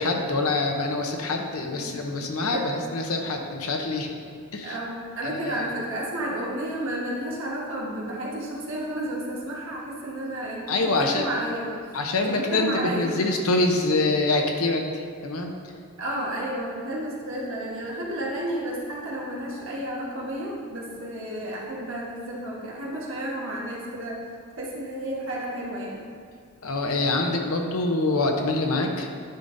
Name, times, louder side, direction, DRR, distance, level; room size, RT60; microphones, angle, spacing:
voice 1, 0.0-4.2 4.5-4.8 5.2-5.7 10.7-11.2 11.9-15.5 26.6-29.1, left 2 dB, 75° left, 3 dB, 0.8 m, -25 dB
voice 2, 4.6-11.7 12.2-13.2 16.0-24.2 24.6-26.0, right 1 dB, 60° right, -4 dB, 1.4 m, -32 dB
10.5 x 5.4 x 2.6 m, 2.1 s
head